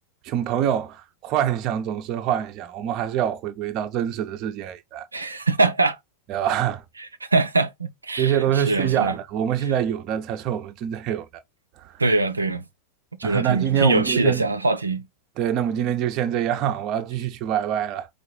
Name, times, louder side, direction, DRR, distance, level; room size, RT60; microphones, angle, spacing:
voice 1, 0.2-5.1 6.3-6.8 8.2-11.3 11.8-11.9 13.2-14.5 15.4-18.1, right 10 dB, 40° right, 0.6 m, -25 dB
voice 2, 5.1-6.0 7.0-9.2 9.6-9.7 12.0-12.6 13.2-15.0, right 2 dB, 80° right, 0.5 m, -23 dB
4.6 x 2.5 x 4.4 m
figure-of-eight pair, 90°, 0 cm